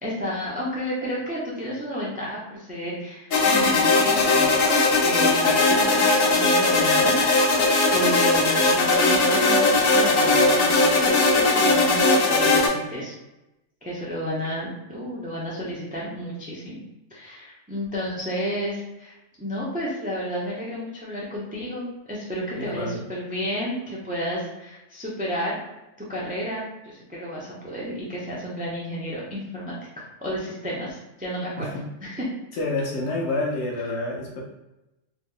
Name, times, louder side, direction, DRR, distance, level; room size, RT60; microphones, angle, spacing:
voice 1, 0.0-7.6 7.9-13.1 13.8-16.8 17.1-25.6 26.1-31.7 32.0-32.3, equal, 15° right, -5 dB, 0.3 m, -31 dB
sound 1, 3.3-12.7, left 2 dB, 90° left, 1.2 m, -19 dB
voice 2, 22.5-23.0 31.6-31.9 32.6-34.4, left 2 dB, 60° left, -2 dB, 1.0 m, -28 dB
2.8 x 2.0 x 3.7 m, 0.96 s
omnidirectional pair, 1.3 m